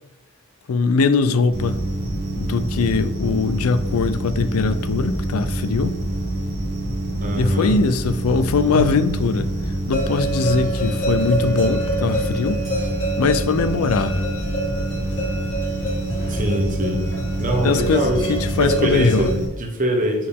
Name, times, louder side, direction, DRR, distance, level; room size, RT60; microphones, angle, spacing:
voice 1, 0.7-1.8 2.3-6.0 7.3-9.5 9.9-12.6 13.2-14.3 17.6-19.3, left 4 dB, 80° left, 11 dB, 0.4 m, -21 dB
sound 1, 1.5-19.5, right 1 dB, 80° right, 1.7 m, -26 dB
voice 2, 7.2-7.8 8.7-9.1 16.3-17.1 17.4-20.3, right 1 dB, 40° right, 2 dB, 1.1 m, -23 dB
sound 2, 9.9-19.3, right 1 dB, 60° left, 1.9 m, -28 dB
6.5 x 4.4 x 3.6 m, 0.92 s
head